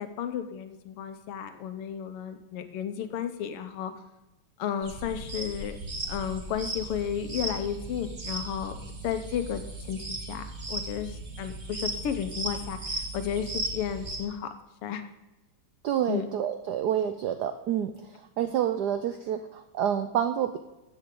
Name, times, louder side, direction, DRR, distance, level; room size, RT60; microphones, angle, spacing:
voice 1, 0.0-3.9 4.6-5.8 6.1-8.8 9.0-14.5 14.8-15.0 16.1-16.3, left 8 dB, 85° left, 9 dB, 1.8 m, -33 dB
sound 1, 4.8-14.2, right 2 dB, 25° right, 1.4 m, -36 dB
voice 2, 15.8-20.6, right 9 dB, 90° right, 8 dB, 0.8 m, -28 dB
13.0 x 7.9 x 3.7 m, 1.0 s
omnidirectional pair, 2.4 m